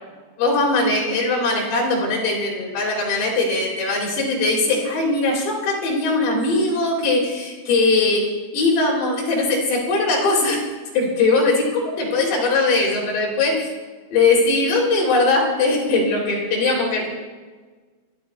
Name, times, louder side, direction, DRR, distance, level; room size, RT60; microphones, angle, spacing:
voice 1, 0.4-8.2 8.5-10.6 10.9-13.7 14.1-17.1, left 3 dB, 60° left, -2 dB, 5.5 m, -20 dB
29.0 x 12.0 x 3.2 m, 1.4 s
omnidirectional pair, 5.8 m